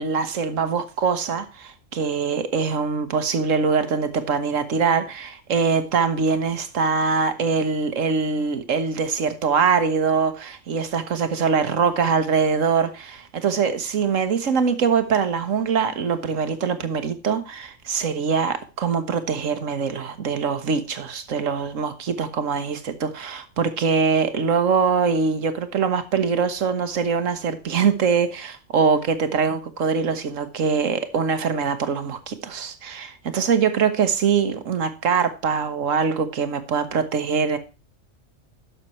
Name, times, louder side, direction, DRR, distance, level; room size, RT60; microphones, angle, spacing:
voice 1, 0.0-37.6, right 5 dB, 75° right, 1.6 m, -23 dB
11.5 x 6.7 x 4.3 m
omnidirectional pair, 1.3 m